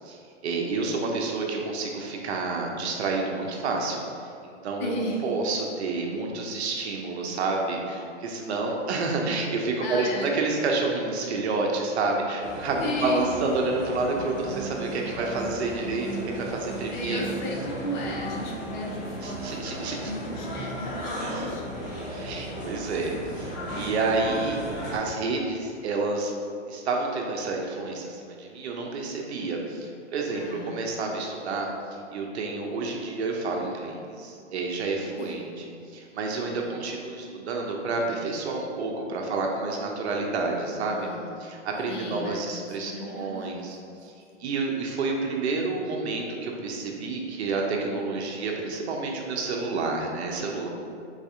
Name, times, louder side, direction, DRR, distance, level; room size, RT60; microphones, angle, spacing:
voice 1, 0.4-4.0 4.4-17.2 19.2-20.1 21.2-21.5 22.1-23.5 23.7-24.6 24.9-26.3 26.7-31.7 32.1-35.6 35.9-41.1 41.4-43.8 44.0-44.1 44.4-50.7, right 3 dB, 65° right, 0 dB, 0.8 m, -29 dB
voice 2, 4.8-5.2 9.8-10.3 12.8-13.3 16.9-19.5 19.8-22.8 30.3-30.8 35.2-35.6 36.6-36.8 40.9-41.6 41.9-43.7 44.3-44.5, left 1 dB, 40° left, -1 dB, 0.8 m, -35 dB
sound 1, 12.4-25.0, equal, 10° left, 0.3 m, -35 dB
4.1 x 2.6 x 4.8 m, 2.5 s
hypercardioid pair, 145°, 36 cm